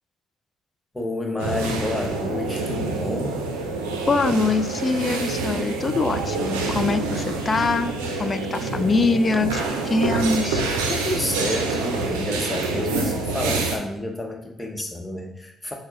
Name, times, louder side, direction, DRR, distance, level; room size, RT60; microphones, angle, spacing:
voice 1, 0.9-3.5 10.9-15.7, left 1 dB, 15° left, 2 dB, 0.9 m, -30 dB
sound 1, 1.4-13.8, right 3 dB, 85° right, 0.5 m, -27 dB
voice 2, 4.1-10.6, left 3 dB, 40° left, 10 dB, 0.4 m, -23 dB
6.0 x 2.1 x 3.6 m, 0.82 s
hypercardioid pair, 55°, 0 cm